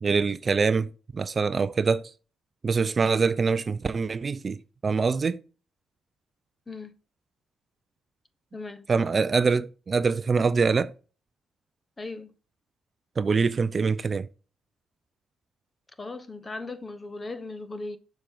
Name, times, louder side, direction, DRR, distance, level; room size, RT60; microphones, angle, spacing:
voice 1, 0.0-2.1 2.6-5.4 8.9-10.9 13.2-14.3, right 5 dB, 35° right, 0.4 m, -24 dB
voice 2, 8.5-8.8 12.0-12.3 16.0-18.0, left 3 dB, 25° left, 1.0 m, -37 dB
6.9 x 5.2 x 4.5 m
cardioid pair, 90°, 0 cm